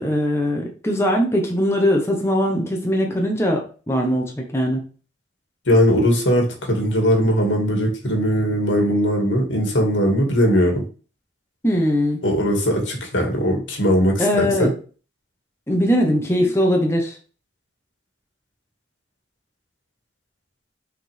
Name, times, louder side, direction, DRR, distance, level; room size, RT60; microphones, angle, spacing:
voice 1, 0.0-4.8 11.6-12.2 14.2-14.7 15.7-17.2, equal, 15° left, 1 dB, 1.1 m, -20 dB
voice 2, 5.7-10.8 12.2-14.2 14.6-14.7, equal, 90° left, 2 dB, 2.1 m, -19 dB
5.8 x 4.8 x 3.5 m, 0.37 s
head